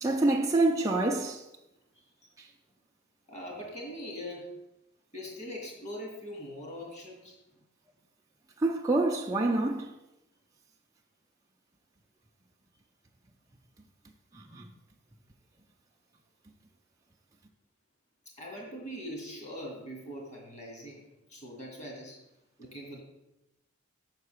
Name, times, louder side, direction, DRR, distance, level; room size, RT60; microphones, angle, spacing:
voice 1, 0.0-1.4 8.6-9.9 14.3-14.6, right 2 dB, 15° right, 0.5 m, -26 dB
voice 2, 3.3-4.5 5.1-7.4 18.4-22.2 22.6-23.0, equal, 35° left, 2.5 m, -42 dB
6.6 x 4.7 x 6.5 m
head